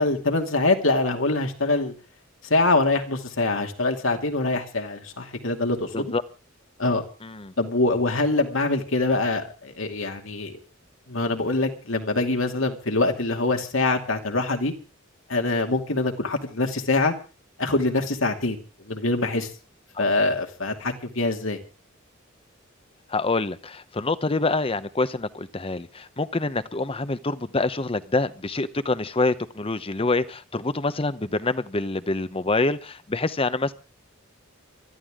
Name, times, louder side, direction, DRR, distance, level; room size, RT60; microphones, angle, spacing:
voice 1, 0.0-1.9 2.4-6.1 6.8-7.0 7.6-10.6 11.1-14.7 15.3-17.1 17.6-18.6 18.9-19.5 20.0-21.6, left 2 dB, 75° left, 4 dB, 2.5 m, -24 dB
voice 2, 7.2-7.5 19.9-20.0 23.1-33.7, left 3 dB, 30° left, 13 dB, 0.9 m, -26 dB
23.5 x 13.5 x 3.7 m, 0.34 s
head